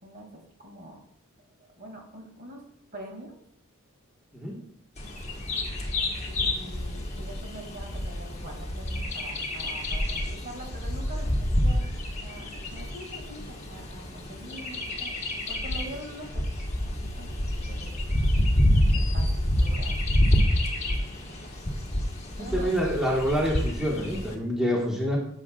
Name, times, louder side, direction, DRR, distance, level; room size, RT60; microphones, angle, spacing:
voice 1, 0.0-1.0 1.6-2.6 2.9-3.4 6.3-15.1 15.5-16.4 16.9-17.9 18.9-20.1 21.0-21.1 21.4-21.5 22.4-22.7, right 1 dB, 45° right, 1 dB, 2.4 m, -44 dB
Bird vocalization bird call bird song, 5.0-24.3, left 1 dB, 30° left, 1.4 m, -28 dB
voice 2, 22.4-25.2, equal, 5° right, -4 dB, 1.5 m, -27 dB
14.5 x 7.2 x 2.4 m, 0.69 s
head